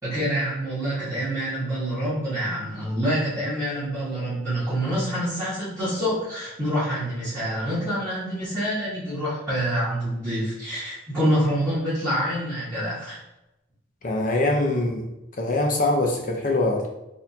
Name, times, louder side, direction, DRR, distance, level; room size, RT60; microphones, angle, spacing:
voice 1, 0.0-13.2, equal, 15° right, -14 dB, 1.5 m, -26 dB
voice 2, 14.0-15.1 15.4-16.9, left 2 dB, 40° left, 0 dB, 0.6 m, -23 dB
4.2 x 2.8 x 2.7 m, 0.92 s
head